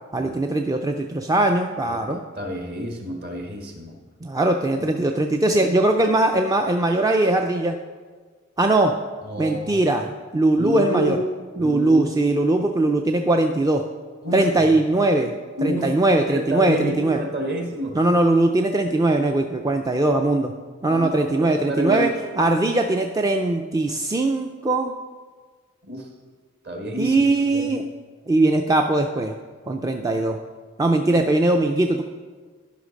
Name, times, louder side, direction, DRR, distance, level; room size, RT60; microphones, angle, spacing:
voice 1, 0.1-2.2 4.2-7.8 8.6-8.9 9.4-11.2 11.6-13.8 14.3-15.3 15.6-17.2 17.9-20.5 20.8-24.9 27.0-27.8 28.3-29.3 29.7-30.4 30.8-32.0, right 2 dB, 15° right, 4 dB, 0.3 m, -20 dB
voice 2, 2.4-3.9 5.0-5.1 5.6-5.7 9.3-9.8 10.6-11.2 11.6-12.1 14.2-14.4 15.6-15.9 16.3-18.0 20.9-22.1 25.8-26.0 26.6-27.2 27.5-27.7, equal, 50° right, 3 dB, 1.4 m, -28 dB
11.5 x 5.7 x 5.2 m, 1.5 s
head